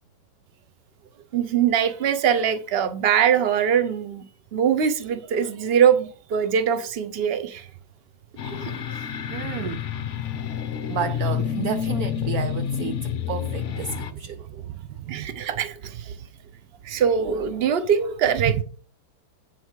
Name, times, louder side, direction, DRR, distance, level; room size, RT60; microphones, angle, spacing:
voice 1, 1.3-4.2 4.5-7.7 8.4-8.8 14.3-14.4 15.1-16.1 16.8-18.6, right 8 dB, 45° right, 0.8 m, -22 dB
sound 1, 8.4-14.1, left 8 dB, 60° left, 0.8 m, -28 dB
voice 2, 9.3-9.8 10.9-14.4 14.7-15.3 18.4-18.6, right 9 dB, 75° right, 0.8 m, -31 dB
8.5 x 7.4 x 4.6 m
omnidirectional pair, 2.1 m